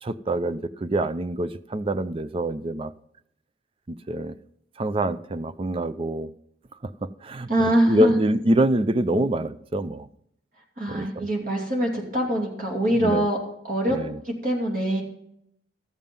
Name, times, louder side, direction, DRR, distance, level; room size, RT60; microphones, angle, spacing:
voice 1, 0.0-2.9 3.9-4.4 4.8-6.3 6.8-10.1 10.9-11.3 12.9-13.3 13.9-14.2, right 1 dB, 30° right, 0.5 m, -25 dB
voice 2, 7.5-8.1 10.8-13.4 13.6-14.0 14.2-15.0, right 1 dB, 50° right, 2.8 m, -23 dB
14.0 x 7.4 x 5.3 m
head